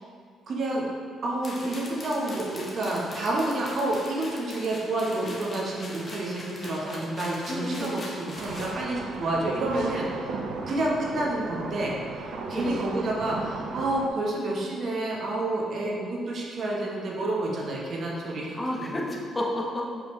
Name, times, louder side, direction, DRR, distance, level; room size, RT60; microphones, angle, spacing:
voice 1, 0.5-0.8 1.2-10.4 10.7-19.0, right 2 dB, 55° right, -3 dB, 1.3 m, -29 dB
sound 1, 1.4-8.7, left 1 dB, 40° left, 1.3 m, -42 dB
voice 2, 7.5-8.0 12.5-12.8 18.6-19.9, left 1 dB, 20° left, -2 dB, 1.1 m, -31 dB
sound 2, 8.4-14.1, right 3 dB, 75° right, 0.6 m, -36 dB
6.9 x 5.1 x 3.3 m, 2.3 s
cardioid pair, 90°, 0 cm